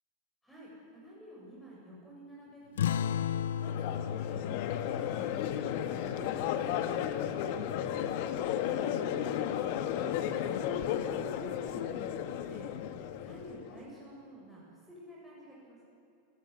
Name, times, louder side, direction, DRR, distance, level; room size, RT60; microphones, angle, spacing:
voice 1, 0.4-3.0 3.5-7.4 8.3-9.5 9.9-12.7 13.2-15.8, equal, 5° left, -5 dB, 7.5 m, -50 dB
sound 1, 2.8-7.8, left 9 dB, 85° left, 0.7 m, -36 dB
Crowd, 3.6-13.8, left 10 dB, 60° left, 1.7 m, -34 dB
27.5 x 17.0 x 9.8 m, 2.5 s
hypercardioid pair, 120°, 0 cm